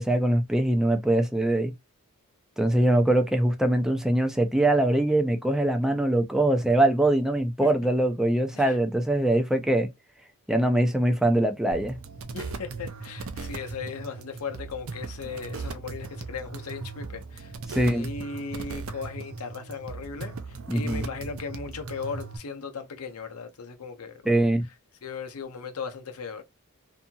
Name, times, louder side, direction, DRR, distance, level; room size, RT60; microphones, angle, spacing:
voice 1, 0.0-1.7 2.6-9.9 10.5-12.0 17.7-18.1 20.7-21.1 24.2-24.6, right 1 dB, ahead, 0.4 m, -23 dB
sound 1, 11.7-22.4, right 4 dB, 65° right, 0.5 m, -38 dB
voice 2, 12.3-20.3 20.7-24.4 25.0-26.4, left 5 dB, 75° left, 0.6 m, -37 dB
2.7 x 2.6 x 2.3 m
head